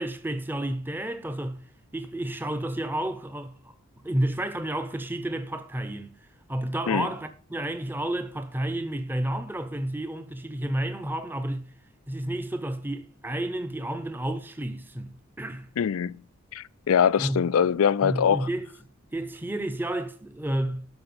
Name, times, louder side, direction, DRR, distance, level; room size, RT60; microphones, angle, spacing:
voice 1, 0.0-1.6 1.9-3.7 4.0-11.7 12.1-15.7 17.2-17.5 18.0-18.7 19.1-20.9, right 1 dB, 10° right, 0.7 m, -31 dB
voice 2, 15.8-16.2 16.5-18.5, left 7 dB, 80° left, 0.4 m, -23 dB
12.5 x 4.8 x 7.8 m
head